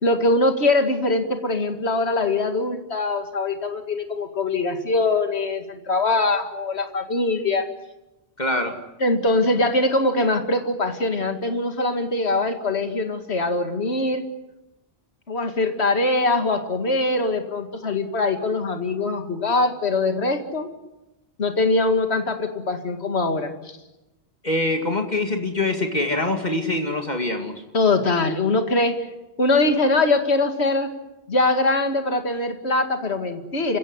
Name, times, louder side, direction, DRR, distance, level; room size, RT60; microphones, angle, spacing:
voice 1, 0.0-7.6 9.0-14.2 15.3-20.7 21.4-23.5 27.7-29.0 29.4-30.9 31.3-33.8, left 2 dB, 85° left, 6 dB, 2.4 m, -22 dB
voice 2, 8.4-8.8 24.4-27.6, left 2 dB, 45° left, 4 dB, 2.4 m, -24 dB
29.0 x 16.5 x 9.8 m, 0.98 s
omnidirectional pair, 1.1 m